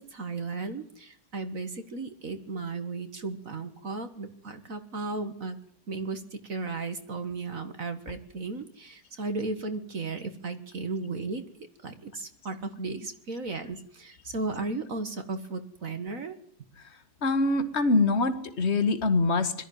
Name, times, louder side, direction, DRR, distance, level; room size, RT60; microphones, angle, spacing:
voice 1, 0.0-5.6 5.9-11.4 11.8-16.4, right 3 dB, 55° right, 9 dB, 2.0 m, -35 dB
voice 2, 17.2-19.5, left 3 dB, 40° left, 10 dB, 2.1 m, -24 dB
22.0 x 14.0 x 9.4 m, 0.65 s
omnidirectional pair, 1.8 m